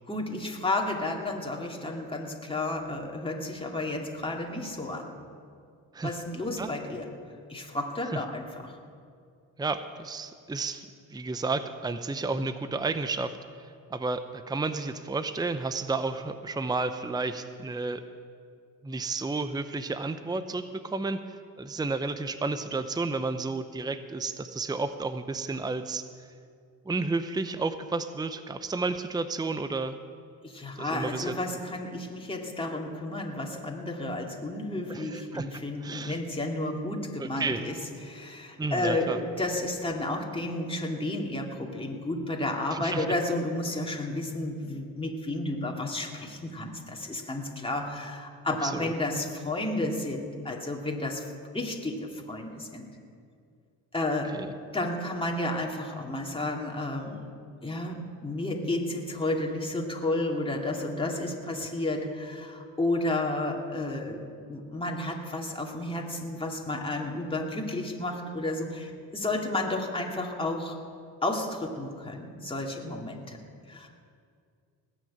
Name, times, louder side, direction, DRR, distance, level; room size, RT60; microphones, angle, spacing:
voice 1, 0.1-5.1 6.0-7.1 7.5-8.8 30.4-37.8 38.0-51.3 51.5-52.9 53.9-54.4 54.7-57.2 57.6-64.2 64.5-70.8 71.2-73.4 73.7-73.9, left 2 dB, 15° left, 0 dB, 2.5 m, -32 dB
voice 2, 9.6-10.9 11.1-13.4 13.9-18.0 18.8-21.2 21.6-26.0 26.9-30.0 30.8-31.3 34.9-35.5 35.8-36.2 37.2-37.6 38.6-39.2 42.7-43.0 48.6-48.9 54.3-54.5, right 3 dB, 10° right, 10 dB, 0.7 m, -31 dB
19.0 x 6.5 x 8.8 m, 2.2 s
supercardioid pair, 70°, 37 cm